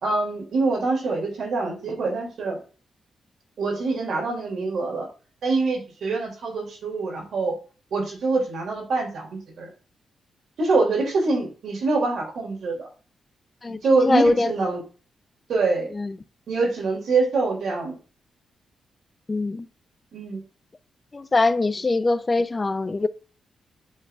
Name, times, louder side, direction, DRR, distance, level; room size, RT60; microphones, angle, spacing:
voice 1, 0.0-2.6 3.6-5.1 5.4-7.5 7.9-9.7 10.6-12.9 13.8-14.8 15.5-15.9 16.5-17.9 20.1-20.4, right 3 dB, 70° right, 2.7 m, -24 dB
voice 2, 13.6-14.5 15.9-16.2 19.3-19.7 21.1-23.1, left 2 dB, 25° left, 0.5 m, -23 dB
9.9 x 3.8 x 2.4 m
cardioid pair, 100°, 0 cm